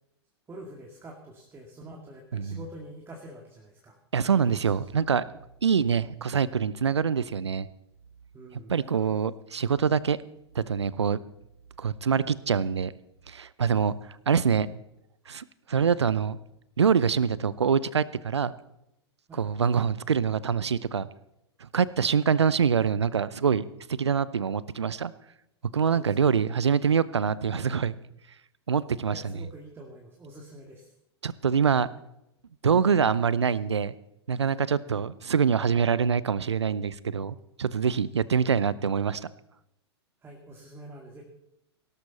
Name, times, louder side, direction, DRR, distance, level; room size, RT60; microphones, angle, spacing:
voice 1, 0.5-4.0 4.3-4.7 8.3-8.7 19.3-19.5 25.9-26.5 29.1-30.9 40.2-41.2, right 1 dB, 15° right, 1 dB, 2.1 m, -46 dB
voice 2, 4.1-5.3 5.6-7.7 8.7-10.2 10.5-11.2 11.8-12.9 13.3-13.9 14.3-14.7 15.3-16.4 16.8-18.5 19.4-21.1 21.6-23.6 23.9-25.1 25.7-27.9 28.7-29.4 31.2-31.9 32.6-33.9 34.3-39.3, right 6 dB, 80° right, 19 dB, 0.6 m, -25 dB
17.5 x 12.5 x 4.1 m, 0.84 s
figure-of-eight pair, 100°, 14 cm